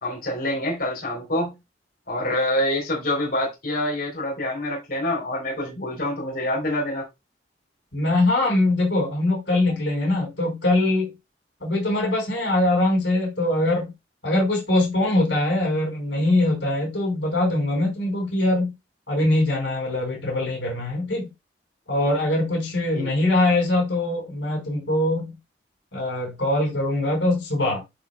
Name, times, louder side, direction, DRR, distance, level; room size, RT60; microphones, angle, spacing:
voice 1, 0.0-1.5 2.1-7.0 22.9-23.1, left 1 dB, 55° left, 4.0 m, -26 dB
voice 2, 7.9-11.1 11.6-13.9 14.2-18.7 19.1-21.3 21.9-25.3 25.9-27.8, left 2 dB, 85° left, 4.6 m, -22 dB
10.5 x 5.1 x 2.4 m
head